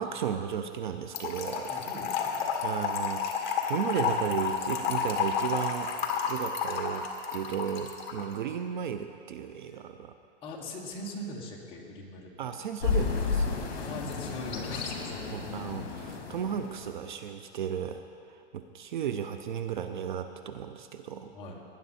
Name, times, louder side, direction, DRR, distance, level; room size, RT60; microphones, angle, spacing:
voice 1, 0.0-1.7 2.6-10.1 12.4-13.5 15.3-18.0 18.3-21.3, right 8 dB, 45° right, 9 dB, 0.5 m, -34 dB
Trickle dribble / Fill (with liquid), 1.1-8.2, left 6 dB, 45° left, 1.7 m, -31 dB
voice 2, 1.7-2.5 10.4-12.5 13.8-15.2 21.3-21.6, left 1 dB, 15° left, -1 dB, 1.2 m, -41 dB
sound 1, 12.8-17.0, left 5 dB, 60° left, 2.4 m, -32 dB
18.5 x 10.5 x 4.2 m, 2.5 s
supercardioid pair, 170°, 33 cm